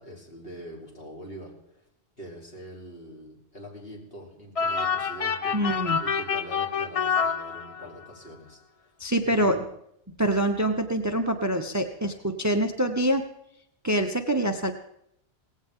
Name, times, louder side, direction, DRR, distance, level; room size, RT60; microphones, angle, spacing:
voice 1, 0.0-1.9 2.2-5.6 6.0-8.9 9.2-9.6, right 1 dB, 55° left, -2 dB, 3.9 m, -43 dB
sound 1, 4.5-8.1, left 6 dB, 35° left, 0.6 m, -27 dB
voice 2, 5.5-6.0 9.0-9.6 10.2-13.2 13.8-14.7, right 1 dB, 15° right, 7 dB, 0.8 m, -25 dB
18.0 x 16.5 x 3.8 m, 0.76 s
omnidirectional pair, 1.2 m